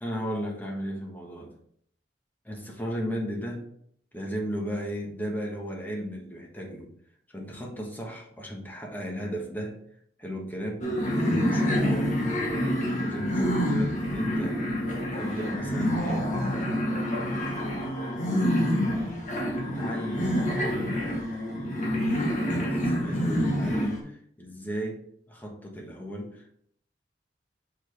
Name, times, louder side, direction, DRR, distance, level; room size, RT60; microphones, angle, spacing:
voice 1, 0.0-1.5 2.4-3.7 4.1-6.9 7.3-9.8 10.2-10.8 11.1-12.4 13.0-14.6 15.1-16.3 19.6-21.3 22.1-26.5, equal, 10° left, -1 dB, 1.3 m, -35 dB
sound 1, 10.8-24.0, equal, 45° left, 1.2 m, -27 dB
5.9 x 4.8 x 3.4 m, 0.66 s
head